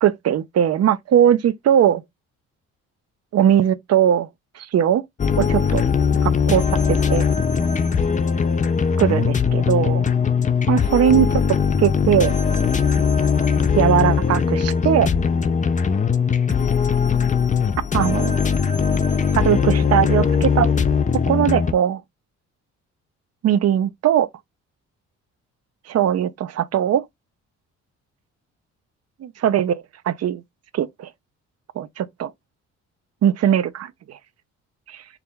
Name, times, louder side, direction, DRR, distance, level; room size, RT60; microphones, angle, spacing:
voice 1, 0.0-2.0 3.3-4.3 4.6-5.0 5.4-5.9 6.2-6.6 7.1-7.3 9.0-10.0 10.7-11.3 11.8-12.4 13.8-15.1 17.9-18.3 19.3-20.7 21.3-22.0 23.4-24.3 25.9-27.0 29.2-30.4 30.7-31.1 31.8-32.3 33.2-34.2 34.9-35.0, right 10 dB, 55° right, 0.7 m, -19 dB
sound 1, 5.2-21.7, left 6 dB, 25° left, 0.5 m, -20 dB
4.7 x 2.5 x 3.5 m
cardioid pair, 90°, 30 cm